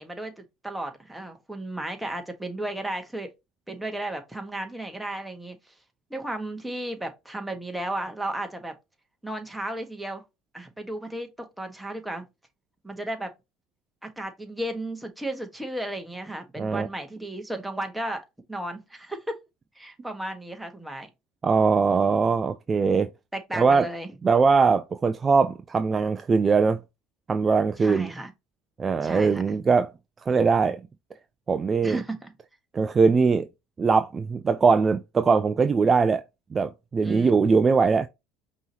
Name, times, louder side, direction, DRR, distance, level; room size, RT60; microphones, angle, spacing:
voice 1, 0.0-3.3 3.7-5.6 6.1-8.7 9.2-10.2 10.5-12.3 12.8-13.3 14.0-18.2 18.5-19.4 19.7-21.1 21.9-22.1 23.3-24.1 27.8-28.3 29.0-29.5 31.8-32.3 37.0-37.5, right 1 dB, 5° right, 1.4 m, -34 dB
voice 2, 16.6-16.9 21.4-23.1 23.5-23.9 24.2-26.8 27.3-28.1 28.8-29.9 30.3-30.8 31.5-32.0 32.7-33.5 33.8-36.2 36.5-38.1, right 5 dB, 30° right, 0.4 m, -21 dB
5.3 x 3.1 x 2.8 m
hypercardioid pair, 75°, 0 cm